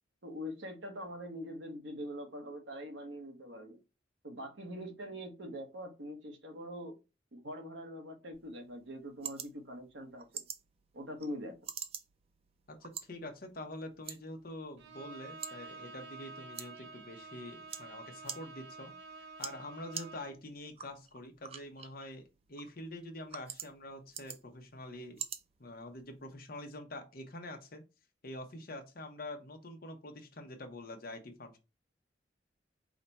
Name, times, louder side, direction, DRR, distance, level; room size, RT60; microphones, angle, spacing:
voice 1, 0.2-3.8 4.2-7.0 7.3-10.4 10.9-11.6, equal, 90° right, 1.1 m, -43 dB
sound 1, 8.3-26.3, right 8 dB, 35° right, 0.4 m, -49 dB
voice 2, 12.7-18.9 19.4-22.2 22.5-25.2 25.6-27.8 28.2-31.6, left 1 dB, 55° left, 0.9 m, -46 dB
Bowed string instrument, 14.8-20.5, right 3 dB, 75° right, 0.7 m, -50 dB
4.9 x 2.2 x 4.0 m
head